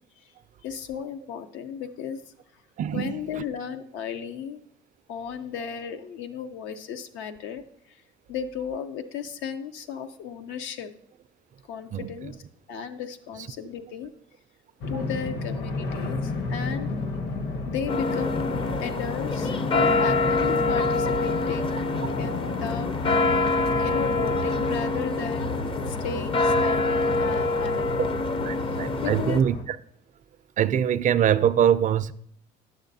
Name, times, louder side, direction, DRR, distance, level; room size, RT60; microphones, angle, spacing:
voice 1, 0.6-2.2 2.9-4.6 5.1-8.0 8.3-10.9 11.7-12.4 12.7-14.1 14.9-16.9 17.7-18.5 18.8-21.9 22.2-22.9 23.8-28.1 28.6-29.4, left 7 dB, 80° left, 0.6 m, -35 dB
voice 2, 2.8-3.4 11.9-12.1 28.4-29.8 30.6-32.1, right 9 dB, 40° right, 0.4 m, -23 dB
sound 1, 14.8-29.6, left 3 dB, 60° left, 1.0 m, -32 dB
sound 2, 17.9-29.4, left 3 dB, 25° left, 0.5 m, -26 dB
9.2 x 6.5 x 2.7 m
supercardioid pair, 80°, 20 cm